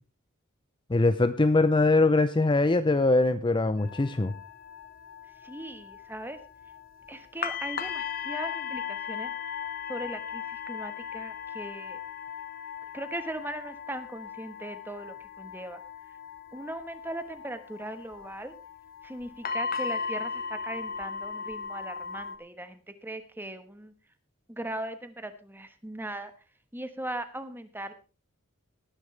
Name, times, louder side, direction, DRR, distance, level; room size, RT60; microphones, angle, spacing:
voice 1, 0.9-4.3, left 2 dB, 25° left, 11 dB, 0.6 m, -22 dB
sound 1, 3.8-22.4, left 6 dB, 45° left, 1.1 m, -38 dB
voice 2, 5.4-6.4 7.1-9.3 9.9-12.0 12.9-15.8 16.5-18.5 19.0-23.9 24.5-26.3 26.7-27.9, right 1 dB, 10° right, 9 dB, 1.3 m, -39 dB
19.0 x 10.0 x 3.3 m, 0.34 s
head